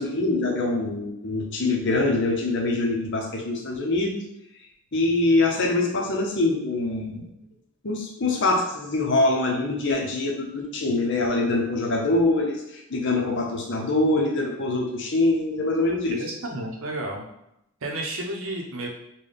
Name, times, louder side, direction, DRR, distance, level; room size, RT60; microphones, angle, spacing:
voice 1, 0.0-4.2 4.9-7.3 7.8-16.2, left 2 dB, 55° left, 1 dB, 0.7 m, -24 dB
voice 2, 16.2-17.2 17.8-18.9, right 1 dB, 65° right, 0 dB, 0.7 m, -31 dB
3.9 x 2.2 x 3.4 m, 0.81 s
head